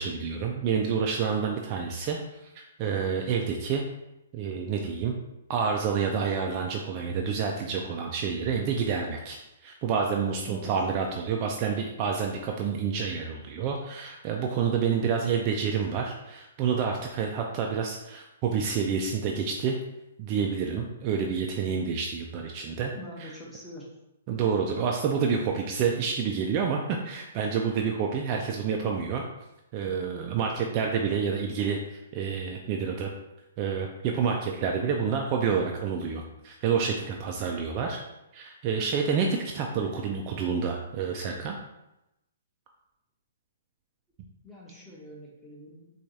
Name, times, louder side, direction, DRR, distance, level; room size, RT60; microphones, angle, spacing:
voice 1, 0.0-3.8 4.3-5.1 5.5-19.8 20.2-22.9 23.2-23.3 24.3-29.2 29.7-33.1 33.6-38.0 38.3-41.6, right 6 dB, 30° right, 1 dB, 0.3 m, -28 dB
voice 2, 22.9-23.9 30.5-30.9 44.4-45.9, equal, 5° left, -5 dB, 0.8 m, -44 dB
4.5 x 2.3 x 2.7 m, 0.91 s
hypercardioid pair, 155°, 0 cm